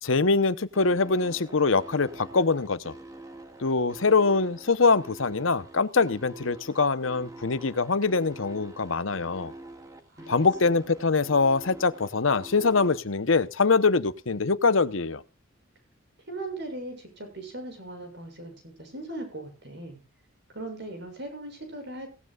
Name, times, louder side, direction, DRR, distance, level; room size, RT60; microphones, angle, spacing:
voice 1, 0.0-2.9 3.6-9.5 10.3-15.2, left 4 dB, 80° left, 15 dB, 0.9 m, -23 dB
sound 1, 0.7-13.0, right 1 dB, 15° right, 2.0 m, -45 dB
voice 2, 10.1-10.4 16.3-20.0 20.5-22.1, right 2 dB, 55° right, 6 dB, 6.9 m, -39 dB
17.5 x 16.0 x 2.4 m, 0.32 s
head